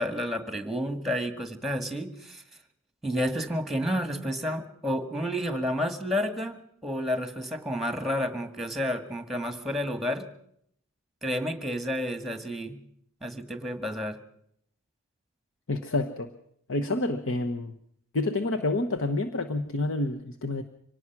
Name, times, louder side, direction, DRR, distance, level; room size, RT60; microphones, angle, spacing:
voice 1, 0.0-2.4 3.0-10.3 11.2-12.8 13.2-14.2, equal, ahead, 8 dB, 1.8 m, -30 dB
voice 2, 15.7-16.3 16.7-17.7 18.1-20.6, left 2 dB, 60° left, 7 dB, 1.1 m, -28 dB
25.0 x 18.5 x 6.1 m, 0.70 s
head